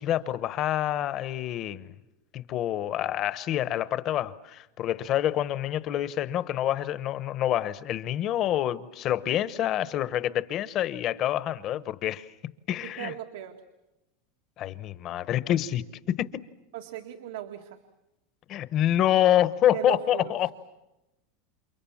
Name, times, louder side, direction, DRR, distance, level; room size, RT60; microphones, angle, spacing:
voice 1, 0.0-1.9 2.3-12.3 12.7-13.1 14.6-16.3 18.5-20.5, left 12 dB, 30° left, 15 dB, 0.9 m, -27 dB
voice 2, 12.8-13.6 16.7-17.8 19.7-20.3, right 12 dB, 85° right, 4 dB, 2.0 m, -37 dB
29.5 x 28.0 x 7.2 m, 0.96 s
supercardioid pair, 170°, 0 cm